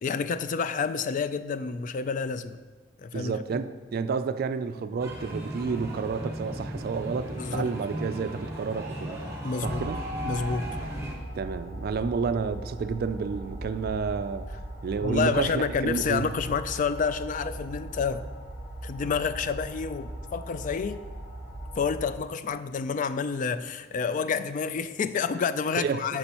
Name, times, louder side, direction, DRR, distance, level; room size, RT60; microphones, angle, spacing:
voice 1, 0.0-2.6 3.0-3.6 7.4-7.7 9.4-9.8 10.2-10.7 15.0-18.2 18.8-21.0 21.8-26.2, left 5 dB, 45° left, 13 dB, 0.3 m, -29 dB
voice 2, 3.1-9.2 9.6-10.0 11.3-14.5 14.8-16.3 25.8-26.0, right 5 dB, 55° right, 11 dB, 0.3 m, -30 dB
sound 1, 5.0-11.1, equal, 15° right, 1.2 m, -36 dB
sound 2, 9.6-22.1, right 1 dB, 75° left, 2.2 m, -39 dB
9.7 x 6.1 x 2.9 m, 1.4 s
head